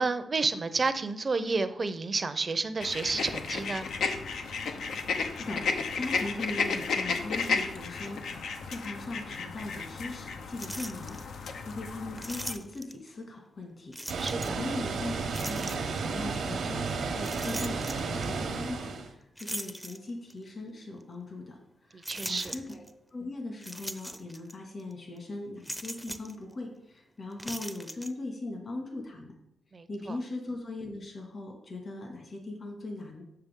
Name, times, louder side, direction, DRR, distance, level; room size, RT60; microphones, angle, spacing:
voice 1, 0.0-3.9 14.2-14.6 21.9-22.5 29.7-30.2, right 3 dB, 45° right, 11 dB, 0.6 m, -30 dB
sound 1, 2.8-12.5, left 5 dB, 85° left, 0.8 m, -33 dB
voice 2, 5.4-14.0 14.6-18.9 19.2-21.6 21.9-22.8 23.1-29.3 29.9-33.2, left 2 dB, 50° left, 2 dB, 1.9 m, -39 dB
sound 2, 10.6-11.2 12.2-13.1 13.9-14.7 15.3-16.0 17.2-18.3 19.4-20.4 21.0-21.1 22.0-22.9 23.6-24.5 24.8-24.9 25.6-26.4 27.3-28.1, equal, ahead, 0.6 m, -40 dB
Water, 14.1-19.1, right 4 dB, 80° right, 0.9 m, -33 dB
6.7 x 6.7 x 3.7 m, 0.75 s
cardioid pair, 65°, 0 cm